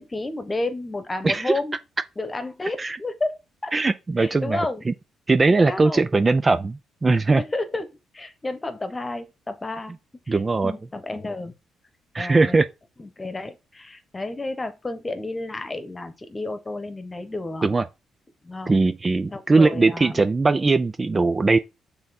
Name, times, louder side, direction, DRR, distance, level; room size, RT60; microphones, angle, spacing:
voice 1, 0.0-1.8 2.2-3.7 4.2-4.9 5.5-6.1 7.4-7.9 8.1-10.0 10.3-11.5 12.2-12.6 13.0-17.7 18.4-18.7 19.3-20.2, left 2 dB, 20° left, 1.2 m, -31 dB
voice 2, 3.7-4.9 5.3-7.4 10.3-10.7 12.1-12.7 17.6-17.8 18.7-21.6, right 3 dB, 25° right, 0.5 m, -20 dB
6.7 x 3.6 x 4.2 m
cardioid pair, 90°, 0 cm